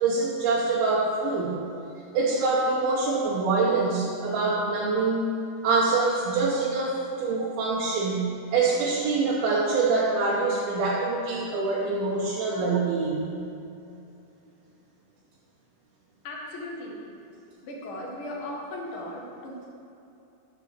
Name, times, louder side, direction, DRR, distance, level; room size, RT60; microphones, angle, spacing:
voice 1, 0.0-1.7 2.1-5.4 5.6-13.4, right 3 dB, 75° right, -4 dB, 2.6 m, -25 dB
voice 2, 16.2-17.0 17.6-19.6, left 1 dB, 65° left, -3 dB, 1.3 m, -37 dB
8.3 x 5.8 x 7.4 m, 2.7 s
omnidirectional pair, 4.8 m